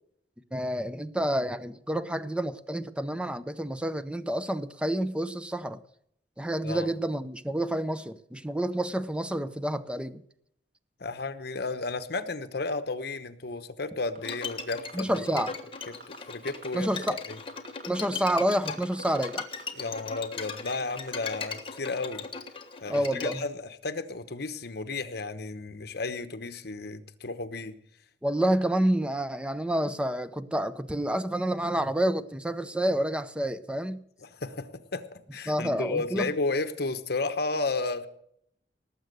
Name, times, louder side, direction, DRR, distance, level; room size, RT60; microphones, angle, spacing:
voice 1, 0.5-5.8 6.4-10.2 14.9-15.6 16.7-17.2 17.9-19.5 22.9-23.4 28.2-34.0 35.5-36.3, right 1 dB, 5° right, 13 dB, 0.7 m, -29 dB
voice 2, 11.0-15.4 16.3-17.4 19.7-22.2 22.8-27.7 34.2-38.1, left 3 dB, 65° left, 9 dB, 1.1 m, -33 dB
Bowed string instrument, 14.2-23.4, left 5 dB, 30° left, 1.4 m, -38 dB
sound 1, 14.2-14.9 15.3-16.2 16.5-17.1 17.3-19.6 19.9-20.0 20.3-21.5 21.9-22.0, right 4 dB, 55° right, 3.0 m, -47 dB
19.0 x 7.7 x 6.7 m, 0.72 s
head